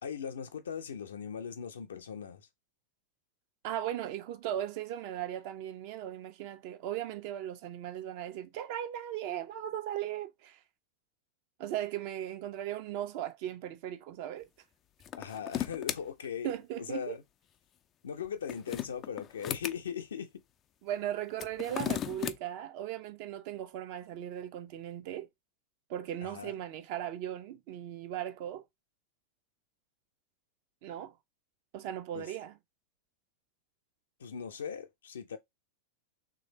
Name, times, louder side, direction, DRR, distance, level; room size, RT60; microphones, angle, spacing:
voice 1, 0.0-2.5 15.2-17.2 18.0-20.3 26.2-26.6 32.1-32.3 34.2-35.4, left 7 dB, 65° left, 0.6 m, -39 dB
voice 2, 3.6-10.6 11.6-14.5 16.4-17.2 20.8-25.3 25.9-28.6 30.8-31.1 31.7-32.6, right 11 dB, 45° right, 0.6 m, -37 dB
sound 1, 15.0-16.0 18.2-19.8 21.3-22.4, left 10 dB, 30° left, 0.3 m, -35 dB
3.2 x 2.7 x 4.0 m
figure-of-eight pair, 90°, 0 cm